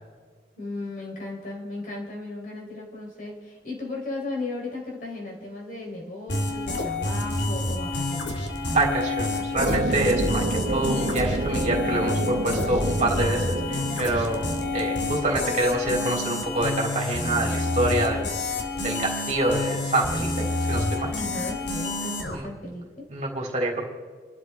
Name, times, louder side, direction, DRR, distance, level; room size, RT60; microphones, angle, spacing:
voice 1, 0.6-8.3 21.1-23.0, left 2 dB, 50° left, -2 dB, 4.0 m, -35 dB
sound 1, 6.3-22.3, left 2 dB, 85° left, 2.4 m, -28 dB
voice 2, 8.7-14.5 14.7-21.1 22.3-22.5 23.1-23.8, right 2 dB, 40° right, -1 dB, 3.5 m, -26 dB
sound 2, 9.6-15.0, right 2 dB, 60° right, 0.8 m, -29 dB
30.0 x 12.5 x 3.6 m, 1.5 s
head